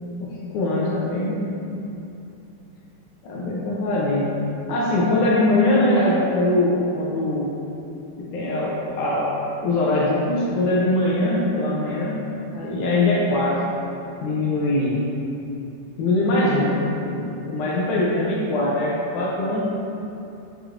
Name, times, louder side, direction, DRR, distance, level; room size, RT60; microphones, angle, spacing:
voice 1, 0.2-1.4 3.2-4.4 4.7-7.5 8.2-9.3 9.6-12.2 12.5-13.6 14.2-15.0 16.0-16.8 17.1-19.6, left 1 dB, 80° left, -5 dB, 1.9 m, -22 dB
6.3 x 3.1 x 2.4 m, 2.8 s
omnidirectional pair, 3.9 m